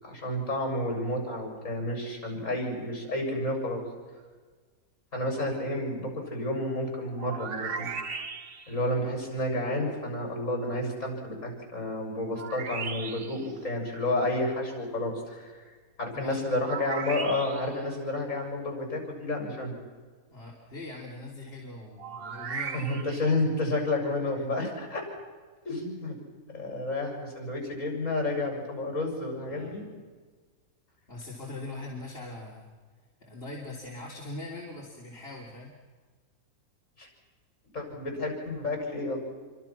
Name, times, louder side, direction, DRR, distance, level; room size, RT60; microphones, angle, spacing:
voice 1, 0.0-3.8 5.1-7.9 8.7-15.6 16.0-19.8 22.7-25.1 25.6-26.1 26.5-29.8 37.0-37.1 37.7-39.2, left 2 dB, 60° left, 2 dB, 7.8 m, -30 dB
sound 1, 7.2-8.8 12.3-13.5 16.6-17.9 22.0-23.3, right 5 dB, 45° right, 1.1 m, -37 dB
voice 2, 20.3-22.9 24.3-24.4 29.5-29.8 31.1-32.7 33.2-35.7, left 2 dB, 40° left, -4 dB, 3.6 m, -41 dB
28.5 x 25.5 x 6.1 m, 1.4 s
omnidirectional pair, 1.5 m